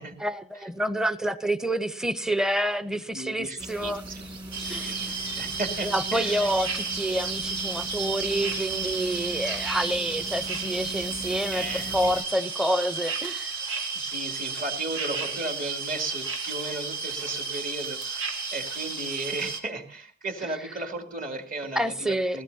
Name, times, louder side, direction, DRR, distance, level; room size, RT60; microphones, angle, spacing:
voice 1, 0.2-4.0 4.7-4.9 5.8-13.5 21.8-22.4, right 1 dB, 5° right, 13 dB, 0.7 m, -28 dB
voice 2, 3.1-4.3 4.6-6.5 11.5-11.9 13.9-22.4, right 2 dB, 45° right, 5 dB, 2.6 m, -35 dB
sound 1, 3.6-12.2, right 2 dB, 25° right, 2.3 m, -38 dB
sound 2, 4.5-19.6, right 4 dB, 80° right, 2.8 m, -33 dB
20.5 x 18.0 x 2.8 m, 0.40 s
head